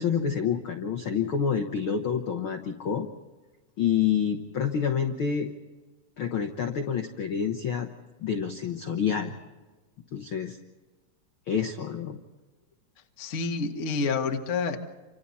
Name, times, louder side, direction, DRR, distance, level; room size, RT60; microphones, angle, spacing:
voice 1, 0.0-3.1 3.8-5.5 6.2-7.9 8.2-9.4 10.1-10.6 11.5-12.2, left 7 dB, 65° left, 4 dB, 1.3 m, -28 dB
voice 2, 13.2-14.8, left 4 dB, 45° left, 3 dB, 0.9 m, -28 dB
29.5 x 26.0 x 4.2 m, 1.2 s
omnidirectional pair, 4.0 m